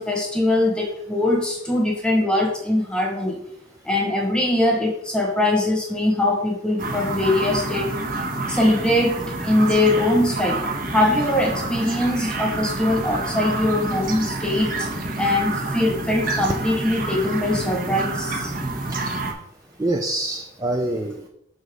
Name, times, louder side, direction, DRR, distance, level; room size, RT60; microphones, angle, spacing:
voice 1, 0.0-3.4 3.8-8.0 8.5-10.6 10.9-14.9 15.2-18.5, left 1 dB, 5° left, 1 dB, 1.2 m, -22 dB
sound 1, 6.8-19.3, right 2 dB, 45° right, 1.1 m, -28 dB
voice 2, 19.8-21.3, right 1 dB, 20° right, 1 dB, 0.4 m, -25 dB
6.5 x 4.0 x 5.1 m, 0.74 s
head